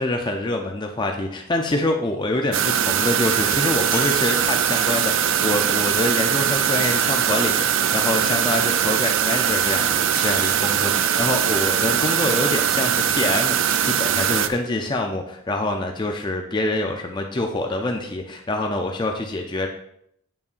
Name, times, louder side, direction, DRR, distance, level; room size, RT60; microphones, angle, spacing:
voice 1, 0.0-19.7, left 2 dB, 20° left, 3 dB, 0.4 m, -25 dB
sound 1, 1.2-1.3 3.3-3.4 3.9-4.8 6.7-8.0 10.1-11.1 13.7-14.8, right 3 dB, 40° right, 0.9 m, -38 dB
sound 2, 2.5-14.5, right 9 dB, 60° right, 0.4 m, -21 dB
8.3 x 7.0 x 2.5 m, 0.72 s
head